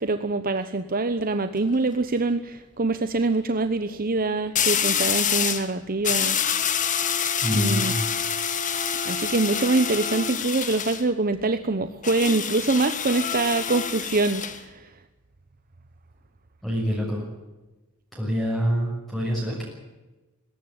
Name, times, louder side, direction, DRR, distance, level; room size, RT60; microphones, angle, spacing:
voice 1, 0.0-6.4 7.5-8.0 9.0-14.9, right 3 dB, 40° right, 10 dB, 0.9 m, -24 dB
sound 1, 1.4-1.7 4.5-5.7 6.0-11.0 12.0-14.6, left 8 dB, 35° left, 1.6 m, -26 dB
voice 2, 7.4-8.0 16.6-17.2 18.1-19.7, equal, ahead, -4 dB, 6.5 m, -26 dB
20.5 x 18.0 x 8.7 m, 1.1 s
head